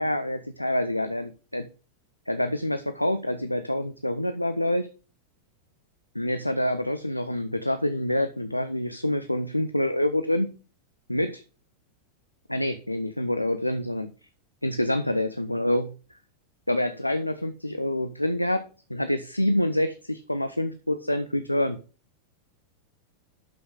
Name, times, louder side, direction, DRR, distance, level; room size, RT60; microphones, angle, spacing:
voice 1, 0.0-1.7 2.3-4.9 6.1-10.5 11.1-11.4 12.5-14.1 14.6-15.9 16.7-18.6 18.9-21.8, left 1 dB, 85° left, 10 dB, 0.6 m, -26 dB
12.0 x 5.5 x 3.7 m, 0.34 s
figure-of-eight pair, 90°, 0 cm